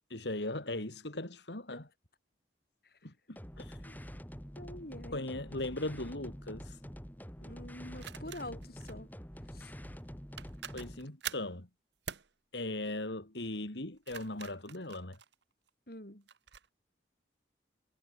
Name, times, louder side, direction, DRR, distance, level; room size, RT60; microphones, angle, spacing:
voice 1, 0.1-1.9 3.0-3.8 5.1-6.8 10.7-11.7 12.5-15.2, left 2 dB, 75° left, 3.1 m, -39 dB
sound 1, 3.4-11.1, equal, 10° left, 4.5 m, -46 dB
voice 2, 4.5-5.2 7.4-9.1 9.5-9.7 15.9-16.2, left 1 dB, 55° left, 6.7 m, -46 dB
sound 2, 5.6-5.8 8.0-9.0 10.0-10.1 10.4-11.5 12.1-12.3 13.8-15.7 16.3-16.7, right 8 dB, 75° right, 1.3 m, -45 dB
head